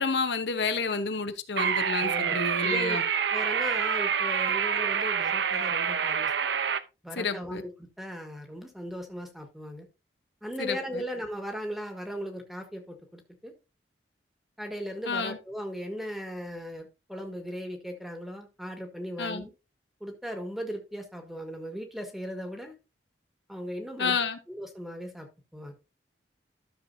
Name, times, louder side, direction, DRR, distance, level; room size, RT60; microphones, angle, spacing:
voice 1, 0.0-3.0 7.2-7.6 10.6-11.0 15.1-15.4 19.2-19.4 24.0-24.4, left 4 dB, 75° left, 1.0 m, -30 dB
sound 1, 1.6-6.8, right 7 dB, 80° right, 0.7 m, -27 dB
voice 2, 2.0-3.0 3.3-6.3 7.0-9.9 10.4-13.5 14.6-19.5 20.0-22.7 23.5-24.2 24.5-25.3 25.5-25.7, equal, ahead, 1.6 m, -37 dB
12.5 x 6.7 x 2.7 m
head